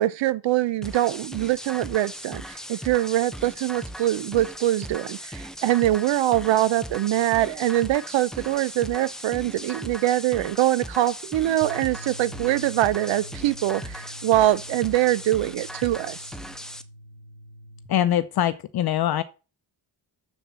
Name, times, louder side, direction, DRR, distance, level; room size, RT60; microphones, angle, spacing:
voice 1, 0.0-16.2, right 14 dB, 75° right, 0.7 m, -23 dB
sound 1, 0.8-16.8, equal, ahead, 0.5 m, -38 dB
sound 2, 11.6-17.9, equal, 50° right, 1.8 m, -44 dB
voice 2, 17.9-19.2, left 11 dB, 55° left, 0.6 m, -23 dB
7.2 x 7.0 x 5.6 m
cardioid pair, 155°, 45 cm